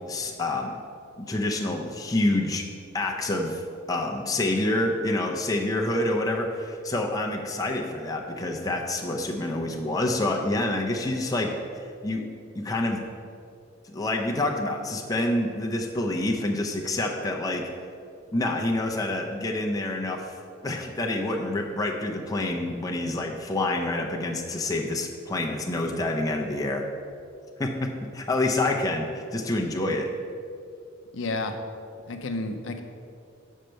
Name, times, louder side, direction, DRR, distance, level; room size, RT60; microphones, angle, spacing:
voice 1, 0.1-0.8 1.2-2.6 2.9-3.6 3.9-11.5 11.8-12.2 12.5-13.0 13.9-17.7 18.3-20.2 20.6-26.8 27.6-30.1, left 2 dB, 20° left, 1 dB, 0.5 m, -27 dB
voice 2, 31.1-31.6 32.1-32.8, left 2 dB, 70° left, 5 dB, 0.6 m, -31 dB
6.4 x 4.5 x 6.5 m, 2.4 s
head